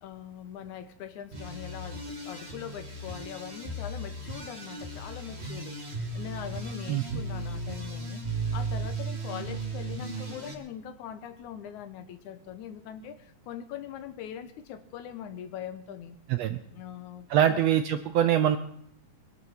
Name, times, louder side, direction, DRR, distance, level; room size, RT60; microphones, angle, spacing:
voice 1, 0.0-8.2 8.5-16.2 16.7-17.6, left 9 dB, 75° left, 11 dB, 2.3 m, -42 dB
sound 1, 1.3-10.5, right 2 dB, 20° right, 2.5 m, -36 dB
voice 2, 17.3-18.6, right 10 dB, 75° right, 10 dB, 1.6 m, -23 dB
22.0 x 11.0 x 5.9 m, 0.67 s
omnidirectional pair, 3.7 m